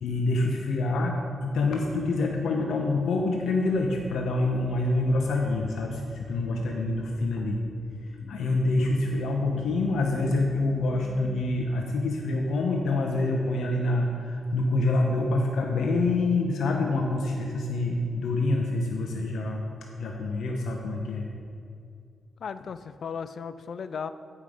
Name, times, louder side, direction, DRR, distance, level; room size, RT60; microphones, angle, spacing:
voice 1, 0.0-7.6 8.1-19.6 20.0-21.3, left 2 dB, 90° left, 1 dB, 0.7 m, -26 dB
sound 1, 3.7-11.4, equal, ahead, 0.5 m, -48 dB
voice 2, 22.4-24.1, left 6 dB, 60° left, 13 dB, 0.3 m, -35 dB
9.6 x 5.4 x 4.9 m, 2.4 s
cardioid pair, 115°, 0 cm